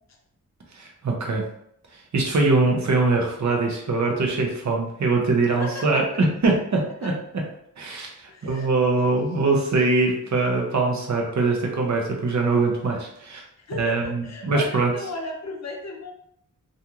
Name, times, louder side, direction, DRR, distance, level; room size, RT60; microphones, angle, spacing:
voice 1, 0.7-1.4 2.1-7.1 7.8-8.1 8.4-13.4 13.8-14.9, right 3 dB, 60° right, 0 dB, 0.7 m, -22 dB
voice 2, 5.5-6.0 7.0-7.1 8.3-8.7 13.6-16.1, left 2 dB, 55° left, 1 dB, 0.6 m, -35 dB
2.9 x 2.5 x 2.3 m, 0.73 s
wide cardioid pair, 110°, 33 cm